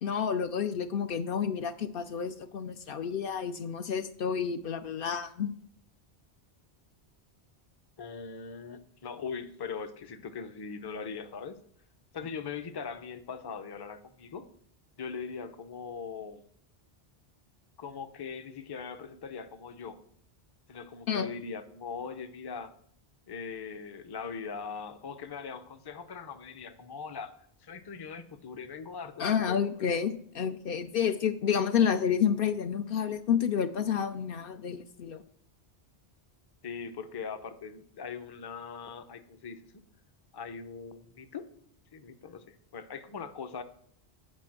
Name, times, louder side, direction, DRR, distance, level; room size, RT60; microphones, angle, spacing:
voice 1, 0.0-5.5 21.1-21.3 29.2-35.2, left 7 dB, 65° left, 9 dB, 0.7 m, -30 dB
voice 2, 8.0-11.6 12.1-14.4 15.0-16.4 17.8-20.0 20.7-22.7 23.3-27.3 27.6-29.7 36.6-39.6 40.3-41.5 41.9-43.6, left 5 dB, 30° left, 10 dB, 0.5 m, -40 dB
8.4 x 5.2 x 7.4 m, 0.63 s
omnidirectional pair, 1.1 m